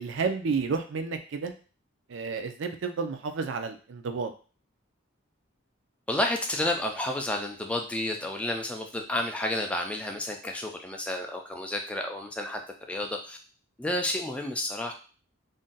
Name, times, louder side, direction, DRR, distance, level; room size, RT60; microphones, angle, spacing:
voice 1, 0.0-1.5 2.1-4.3, right 5 dB, 60° right, 7 dB, 0.4 m, -31 dB
voice 2, 6.1-12.6 12.9-13.4 13.8-14.9, left 1 dB, 5° left, 3 dB, 0.3 m, -31 dB
2.5 x 2.2 x 3.8 m, 0.37 s
head